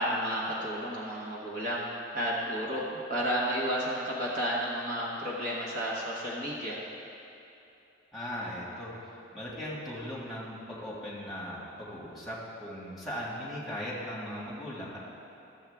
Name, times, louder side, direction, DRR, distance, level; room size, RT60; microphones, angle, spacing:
voice 1, 0.0-1.9 2.1-6.8, equal, 45° right, -5 dB, 1.2 m, -32 dB
voice 2, 8.1-15.0, equal, ahead, -8 dB, 1.8 m, -38 dB
13.5 x 7.2 x 3.5 m, 2.9 s
head